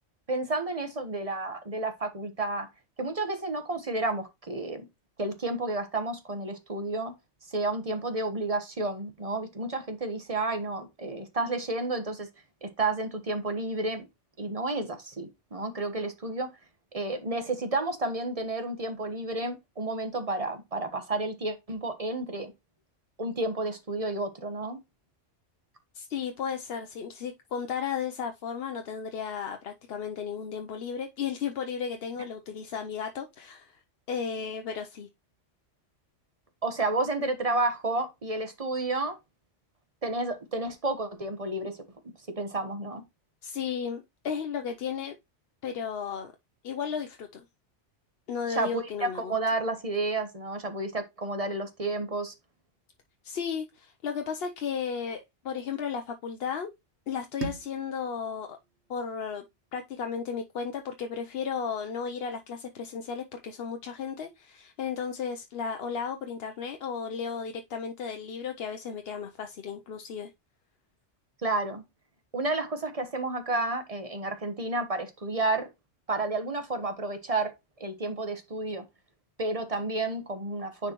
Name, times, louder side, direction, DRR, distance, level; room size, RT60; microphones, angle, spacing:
voice 1, 0.3-2.7 3.0-4.9 5.2-7.1 7.5-12.3 12.6-14.1 14.4-16.5 16.9-22.5 23.2-24.8 32.2-32.3 36.6-39.2 40.0-41.8 42.0-43.0 48.5-52.3 71.4-71.8 72.3-75.7 76.1-77.5 77.8-78.8 79.4-80.9, right 2 dB, 30° right, 1.2 m, -31 dB
voice 2, 25.9-33.8 34.1-35.1 43.4-45.2 45.6-46.3 46.6-47.4 48.3-49.3 53.2-56.7 57.1-58.6 58.9-59.4 59.7-70.3, left 7 dB, 60° left, 0.9 m, -34 dB
sound 1, 57.4-60.3, right 4 dB, 70° right, 1.5 m, -42 dB
9.6 x 4.5 x 3.0 m
omnidirectional pair, 1.2 m